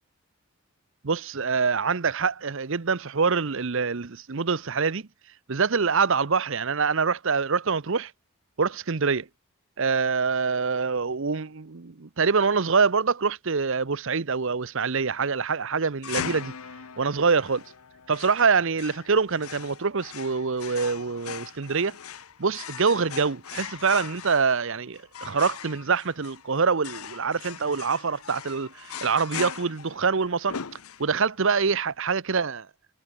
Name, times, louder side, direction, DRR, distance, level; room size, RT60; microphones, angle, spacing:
voice 1, 1.0-5.0 5.5-8.1 8.6-9.3 9.8-16.5 17.0-17.6 18.1-22.0 22.4-30.6 31.0-32.6, right 5 dB, 60° right, 0.8 m, -25 dB
sound 1, 16.0-31.4, left 7 dB, 75° left, 0.9 m, -40 dB
head